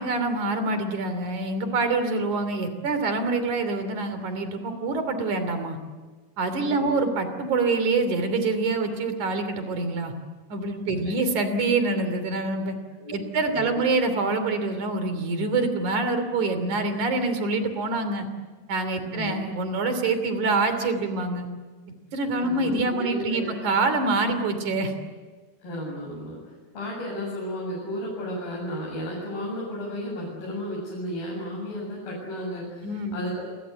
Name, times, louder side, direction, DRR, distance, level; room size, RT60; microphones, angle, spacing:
voice 1, 0.0-5.8 6.4-10.1 10.5-12.8 13.1-18.3 18.7-21.5 22.1-24.9 32.8-33.2, right 3 dB, 55° right, 9 dB, 4.3 m, -26 dB
voice 2, 6.6-7.0 10.9-11.0 13.0-13.2 13.5-13.7 19.0-19.4 22.4-23.6 25.6-26.4 26.7-33.4, equal, 80° left, -4 dB, 9.3 m, -33 dB
29.5 x 23.5 x 8.3 m, 1.4 s
omnidirectional pair, 4.2 m